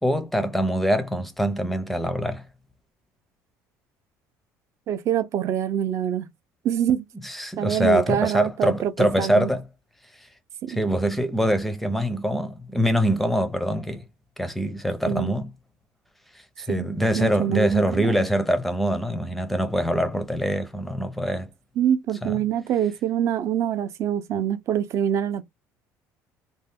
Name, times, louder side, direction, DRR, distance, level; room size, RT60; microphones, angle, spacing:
voice 1, 0.0-2.4 7.2-9.6 10.7-14.0 14.4-15.5 16.6-21.5 22.2-22.4, equal, ahead, 0.5 m, -24 dB
voice 2, 4.9-6.3 6.6-7.0 7.6-9.5 10.6-10.8 15.1-15.3 16.7-16.9 17.1-18.2 21.8-25.4, right 9 dB, 50° right, 0.5 m, -25 dB
2.6 x 2.2 x 3.4 m
cardioid pair, 125°, 6 cm